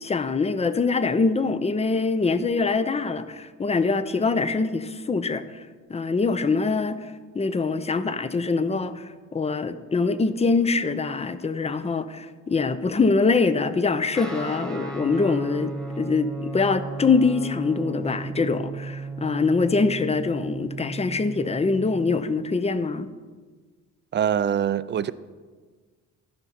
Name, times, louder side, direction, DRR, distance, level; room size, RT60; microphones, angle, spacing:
voice 1, 0.0-5.6 5.9-23.1, left 4 dB, 20° left, 0.6 m, -24 dB
Guitar, 14.1-22.2, right 3 dB, ahead, 1.4 m, -35 dB
voice 2, 24.1-25.1, right 9 dB, 40° right, 0.4 m, -23 dB
12.0 x 5.4 x 5.8 m
cardioid pair, 90°, 30 cm